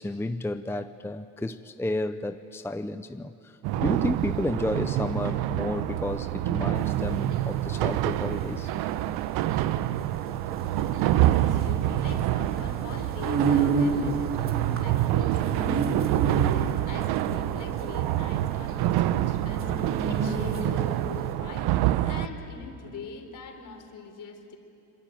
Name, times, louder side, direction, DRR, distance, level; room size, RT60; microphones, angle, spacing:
voice 1, 0.0-8.7, left 2 dB, 5° left, 0.7 m, -32 dB
sound 1, 3.6-22.3, right 13 dB, 75° right, 1.0 m, -27 dB
sound 2, 6.8-21.0, right 4 dB, 35° right, 3.9 m, -31 dB
voice 2, 11.4-24.6, left 5 dB, 55° left, 4.2 m, -43 dB
26.0 x 23.0 x 9.2 m
supercardioid pair, 80°, 37 cm